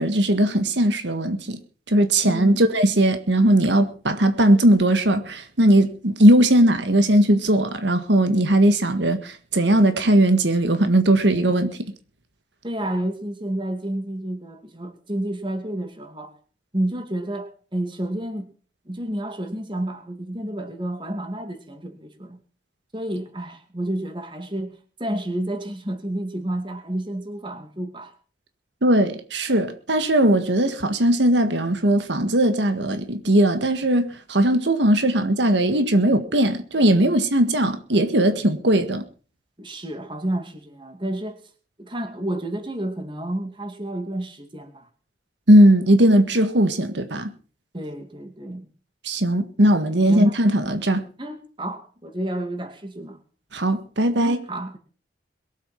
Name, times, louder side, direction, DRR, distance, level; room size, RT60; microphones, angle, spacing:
voice 1, 0.0-1.6 1.9-11.8 28.8-39.0 45.5-47.3 49.0-51.0 53.5-54.4, right 1 dB, 80° right, 1.7 m, -19 dB
voice 2, 2.2-2.6 12.6-16.3 16.7-18.5 18.9-22.4 22.9-28.1 39.6-41.4 41.8-44.9 47.7-48.7 50.1-50.4 51.2-53.2 54.2-54.8, right 1 dB, 25° right, 2.5 m, -30 dB
22.0 x 8.4 x 5.8 m
head